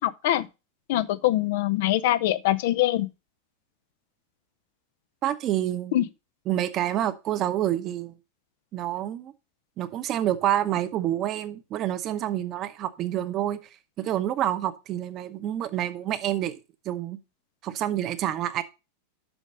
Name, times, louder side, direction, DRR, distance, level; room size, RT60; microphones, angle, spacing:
voice 1, 0.0-0.5 0.9-3.1 5.9-6.0, left 14 dB, 50° left, 0.6 m, -23 dB
voice 2, 5.2-6.0 6.5-8.2 8.7-9.3 9.8-13.6 14.0-16.5 16.8-17.2 17.6-18.6, right 12 dB, 35° right, 0.9 m, -28 dB
7.1 x 6.2 x 5.3 m
figure-of-eight pair, 90°, 0 cm